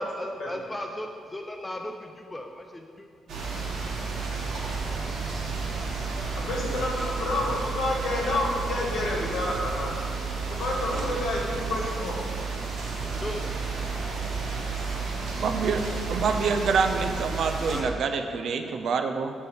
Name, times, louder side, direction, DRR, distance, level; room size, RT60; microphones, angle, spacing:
voice 1, 0.0-3.4 13.1-13.5 17.6-18.0, left 1 dB, 10° left, 3 dB, 0.4 m, -36 dB
sound 1, 3.3-17.8, right 4 dB, 80° right, 1.4 m, -31 dB
voice 2, 6.3-10.2 10.5-12.2, left 1 dB, 70° left, -2 dB, 1.9 m, -29 dB
voice 3, 15.4-15.8 16.1-19.3, right 5 dB, 60° right, 6 dB, 0.5 m, -26 dB
9.8 x 3.3 x 6.4 m, 2.3 s
cardioid pair, 140°, 0 cm